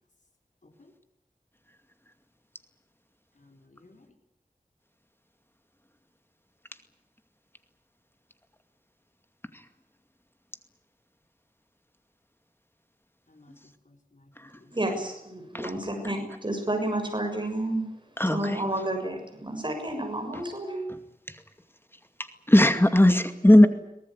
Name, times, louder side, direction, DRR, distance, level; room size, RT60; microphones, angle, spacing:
voice 1, 3.4-4.1 13.3-13.5 13.8-14.8, left 2 dB, 60° left, 4 dB, 4.5 m, -57 dB
voice 2, 14.7-17.8 18.3-20.9, right 1 dB, 35° right, 4 dB, 6.8 m, -30 dB
voice 3, 18.2-18.6 22.5-23.7, left 1 dB, 15° left, 8 dB, 2.3 m, -17 dB
23.5 x 18.5 x 9.7 m, 0.83 s
wide cardioid pair, 45°, 15 cm